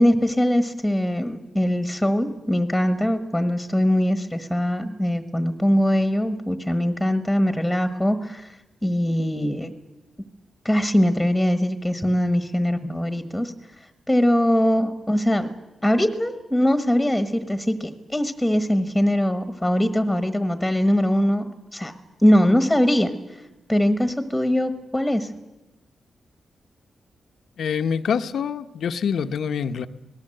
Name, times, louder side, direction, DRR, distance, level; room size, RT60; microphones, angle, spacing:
voice 1, 0.0-8.5 8.8-9.7 10.6-13.5 14.1-15.5 15.8-21.5 21.7-21.9 22.2-23.1 23.7-25.3, equal, ahead, 1.3 m, -21 dB
voice 2, 27.6-29.9, left 7 dB, 75° left, 0.9 m, -25 dB
25.5 x 19.0 x 7.8 m
wide cardioid pair, 160°, 0 cm